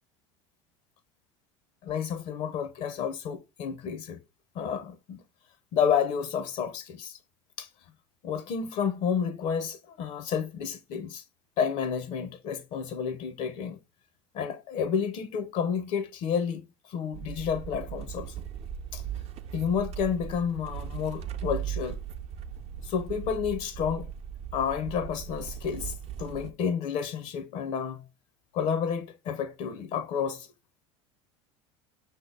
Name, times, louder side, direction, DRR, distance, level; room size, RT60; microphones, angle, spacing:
voice 1, 1.8-4.2 4.5-5.2 5.7-7.2 7.6-7.7 8.2-11.2 11.6-13.8 14.3-18.3 18.9-19.0 19.5-22.0 22.8-24.1 24.5-28.0 28.5-30.5, left 7 dB, 50° left, 0.5 m, -30 dB
sound 1, 17.1-26.5, right 9 dB, 40° right, 0.5 m, -38 dB
5.4 x 2.8 x 3.2 m
hypercardioid pair, 80°, 16 cm